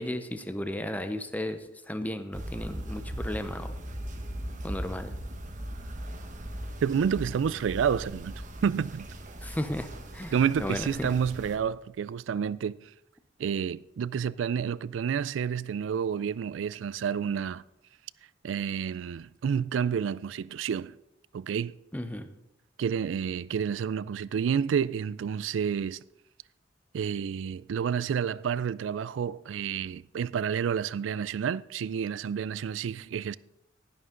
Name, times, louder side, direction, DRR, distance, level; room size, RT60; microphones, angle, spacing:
voice 1, 0.0-3.7 4.6-5.1 9.4-11.1 21.9-22.3, left 1 dB, 10° left, 0.6 m, -34 dB
sound 1, 2.3-11.6, equal, 45° right, 1.2 m, -39 dB
voice 2, 6.8-9.1 10.3-12.7 13.4-17.6 18.4-20.9 21.3-21.8 22.8-26.0 26.9-33.4, right 7 dB, 85° right, 0.3 m, -29 dB
11.5 x 11.0 x 3.8 m
head